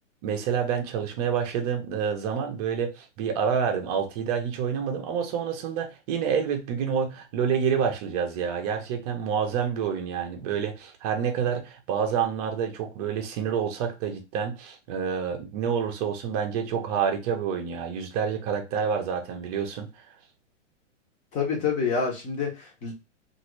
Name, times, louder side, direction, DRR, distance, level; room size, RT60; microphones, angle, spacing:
voice 1, 0.2-20.0, right 7 dB, 30° right, 0.7 m, -28 dB
voice 2, 21.3-22.9, left 5 dB, 20° left, 1.0 m, -27 dB
3.0 x 2.6 x 3.0 m
hypercardioid pair, 150°, 38 cm